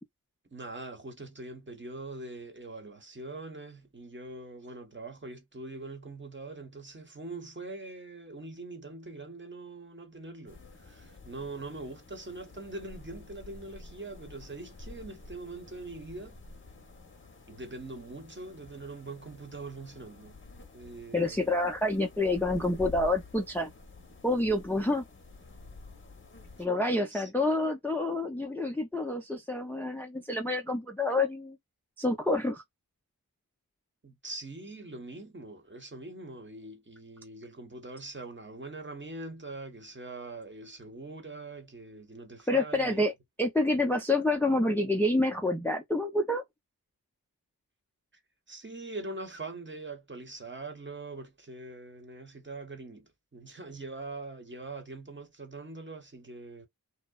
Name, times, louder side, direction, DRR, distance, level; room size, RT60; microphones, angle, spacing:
voice 1, 0.5-16.4 17.5-20.4 20.7-21.6 27.1-27.3 34.0-43.1 48.5-56.7, right 2 dB, 30° right, 1.0 m, -43 dB
sound 1, 10.5-26.7, left 3 dB, 30° left, 0.8 m, -49 dB
voice 2, 21.1-23.7 24.2-25.0 26.6-31.6 32.0-32.6 42.5-43.1 43.4-46.4, left 2 dB, 5° left, 0.5 m, -28 dB
2.7 x 2.0 x 2.3 m
cardioid pair, 40°, 37 cm